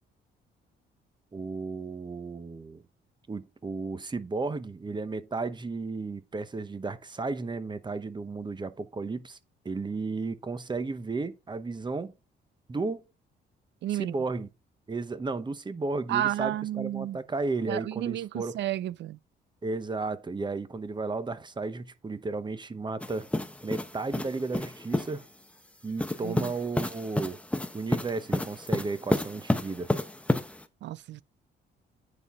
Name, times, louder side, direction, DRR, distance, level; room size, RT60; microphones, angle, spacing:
voice 1, 1.3-2.8 3.3-9.4 9.6-12.1 12.7-13.0 13.9-14.5 14.9-18.6 19.6-23.3 23.6-25.3 25.8-27.4 27.7-29.9, right 3 dB, 20° right, 0.9 m, -33 dB
voice 2, 13.8-14.1 16.1-17.2 17.7-19.2 26.2-26.5 30.8-31.2, right 13 dB, 65° right, 0.4 m, -31 dB
sound 1, 23.0-25.2 26.0-30.6, left 1 dB, 5° left, 0.8 m, -30 dB
9.8 x 4.0 x 4.8 m
cardioid pair, 90°, 20 cm